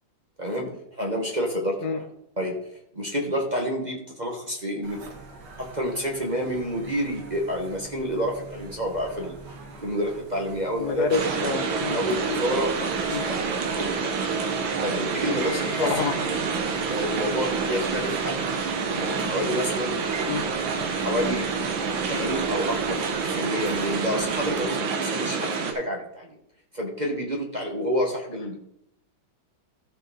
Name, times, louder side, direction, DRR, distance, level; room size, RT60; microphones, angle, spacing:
voice 1, 1.0-2.0 2.4-2.6 2.9-5.0 5.6-9.3 9.8-11.1 11.9-13.4 13.8-14.1 14.8-15.9 16.9-18.4 18.9-20.0 21.0-21.5 22.1-23.0 23.3-26.4 26.7-28.6, equal, 25° right, 0 dB, 1.2 m, -29 dB
sound 1, 4.8-24.6, right 2 dB, 60° right, 2.0 m, -42 dB
voice 2, 10.8-12.0 13.1-13.3 15.8-16.2 20.3-20.5, left 4 dB, 65° left, 6 dB, 1.1 m, -27 dB
sound 2, 11.1-25.7, right 5 dB, 75° right, 1.9 m, -28 dB
14.0 x 5.5 x 4.2 m, 0.79 s
omnidirectional pair, 2.1 m